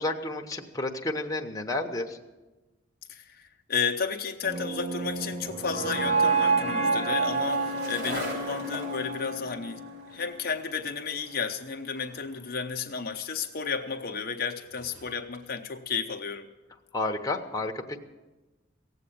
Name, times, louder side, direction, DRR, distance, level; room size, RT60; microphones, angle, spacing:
voice 1, 0.0-2.2 16.9-18.0, left 2 dB, 20° left, 2 dB, 0.9 m, -31 dB
voice 2, 3.1-9.8 10.1-16.5, left 5 dB, 50° left, 4 dB, 0.7 m, -32 dB
sound 1, 4.4-10.5, right 4 dB, 35° right, 1.1 m, -29 dB
Skateboard, 4.9-15.4, equal, 60° right, 5.5 m, -44 dB
17.5 x 7.9 x 8.6 m, 1.2 s
head